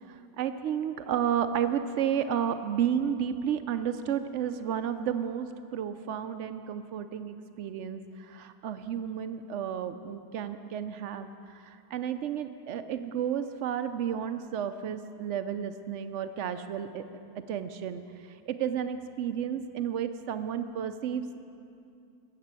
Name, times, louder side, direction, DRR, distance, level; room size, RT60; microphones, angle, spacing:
voice 1, 0.1-17.0 17.5-18.0 18.5-21.4, right 8 dB, 65° right, 10 dB, 0.7 m, -32 dB
14.0 x 7.5 x 7.5 m, 2.6 s
omnidirectional pair, 1.7 m